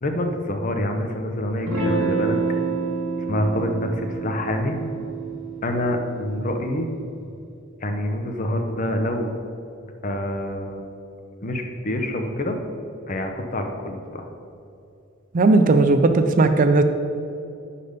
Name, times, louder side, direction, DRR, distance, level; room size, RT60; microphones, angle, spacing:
voice 1, 0.0-2.4 3.3-4.8 5.6-6.9 7.8-9.3 10.0-10.8 11.4-12.6 13.1-14.3, left 1 dB, 40° left, 5 dB, 0.7 m, -26 dB
Electric guitar / Strum, 1.7-6.8, right 4 dB, 75° right, 1.5 m, -28 dB
voice 2, 15.3-16.8, right 3 dB, 40° right, 8 dB, 0.4 m, -16 dB
10.5 x 4.2 x 5.1 m, 2.6 s
head